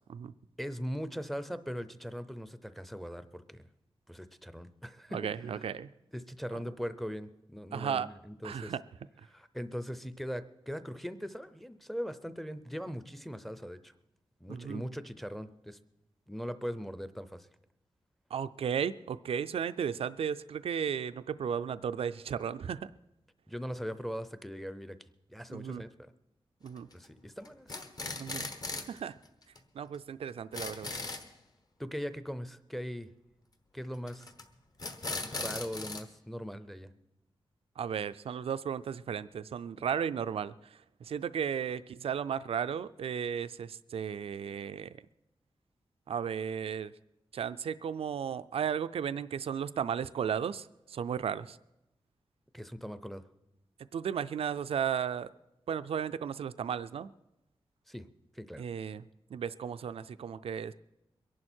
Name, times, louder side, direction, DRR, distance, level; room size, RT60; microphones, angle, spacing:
voice 1, 0.6-3.7 4.1-5.2 5.5-5.6 6.1-8.7 9.3-13.9 14.4-15.8 16.3-17.5 23.5-25.0 25.3-25.9 26.9-27.8 31.8-33.1 33.7-34.3 35.2-36.9 52.5-53.2 57.9-58.1 58.3-58.6, equal, ahead, 12 dB, 0.6 m, -40 dB
voice 2, 5.1-5.9 7.7-8.1 8.4-8.8 14.5-14.8 18.3-22.9 25.5-25.8 26.6-26.9 28.2-28.5 28.9-29.1 29.8-30.9 37.8-45.0 46.1-46.9 47.3-51.6 53.9-55.3 55.7-57.1 58.6-59.0 59.3-60.7, right 8 dB, 80° right, 13 dB, 0.4 m, -34 dB
sound 1, 26.7-27.1 27.4-29.0 29.3-29.4 29.6-29.7 29.9-30.0 30.3-31.3 34.1-34.4 34.8-36.0, left 3 dB, 45° left, 1.2 m, -38 dB
23.0 x 11.0 x 4.4 m, 0.90 s
wide cardioid pair, 160°, 10 cm